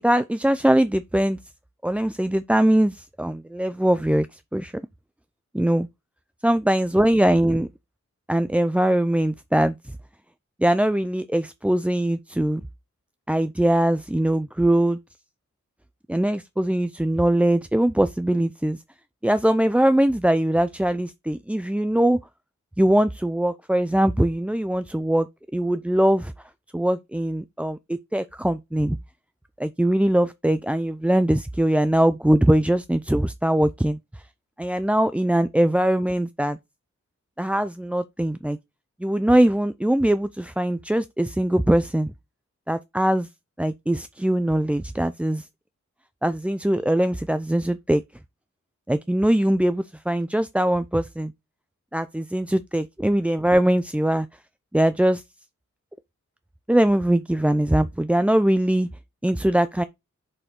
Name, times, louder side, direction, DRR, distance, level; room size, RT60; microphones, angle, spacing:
voice 1, 0.0-1.4 1.8-4.3 4.5-4.7 5.5-5.9 6.4-7.7 8.3-9.7 10.6-12.6 13.3-15.0 16.1-18.8 19.2-22.2 22.8-25.3 25.5-26.3 26.7-29.0 29.6-34.0 34.6-36.6 37.4-38.6 39.0-42.1 42.7-43.3 43.6-45.4 46.2-48.0 48.9-51.3 51.9-54.3 54.7-55.2 56.7-58.9 59.2-59.8, right 1 dB, 5° right, 0.4 m, -21 dB
6.4 x 5.4 x 3.7 m
wide cardioid pair, 85°, 30 cm